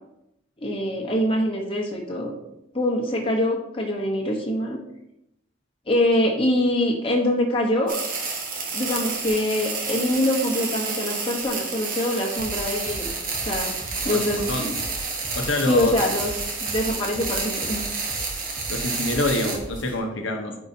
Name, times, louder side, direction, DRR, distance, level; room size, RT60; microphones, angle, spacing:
voice 1, 0.6-2.3 2.7-4.8 5.9-8.0 8.7-13.1 13.4-13.7 14.0-14.7 15.7-16.3 16.6-17.9 19.4-19.6, left 1 dB, 25° left, -1 dB, 1.0 m, -24 dB
sound 1, 7.9-19.6, right 4 dB, 45° right, 1.1 m, -30 dB
sound 2, 12.4-20.0, equal, 20° right, 1.2 m, -39 dB
voice 2, 14.1-14.7 15.3-15.9 18.7-20.6, left 2 dB, 70° left, 3 dB, 0.9 m, -26 dB
9.2 x 4.8 x 2.8 m, 0.83 s
head